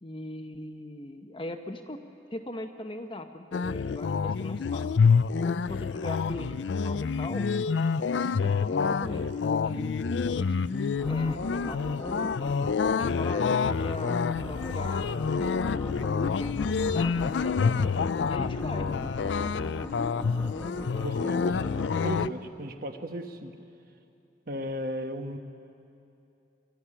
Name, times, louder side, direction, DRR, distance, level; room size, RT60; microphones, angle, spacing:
voice 1, 0.0-2.0 2.3-4.9 5.4-7.5 8.1-10.7 11.0-12.3 12.9-17.7 18.2-18.9 19.2-19.4, left 1 dB, 30° left, 5 dB, 0.8 m, -40 dB
sound 1, 3.5-22.3, left 5 dB, 80° left, 0.4 m, -27 dB
sound 2, 10.9-22.6, left 1 dB, 10° left, 1.3 m, -40 dB
voice 2, 21.0-23.5 24.5-25.4, right 1 dB, 50° right, 6 dB, 1.2 m, -36 dB
23.0 x 13.5 x 9.9 m, 2.8 s
head